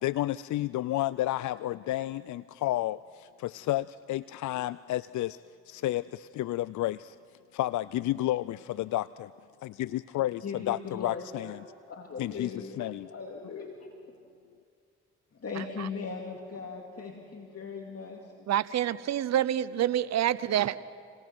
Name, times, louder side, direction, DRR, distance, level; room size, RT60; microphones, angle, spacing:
voice 1, 0.0-5.4 5.7-7.2 7.5-9.3 9.6-11.6 12.2-13.1, left 15 dB, 70° left, 18 dB, 0.5 m, -31 dB
voice 2, 10.4-11.5 11.9-13.9 15.3-18.3, left 5 dB, 50° left, 1 dB, 2.5 m, -39 dB
voice 3, 18.5-20.8, right 11 dB, 60° right, 17 dB, 0.7 m, -27 dB
27.5 x 18.0 x 6.1 m, 2.2 s
supercardioid pair, 50°, 31 cm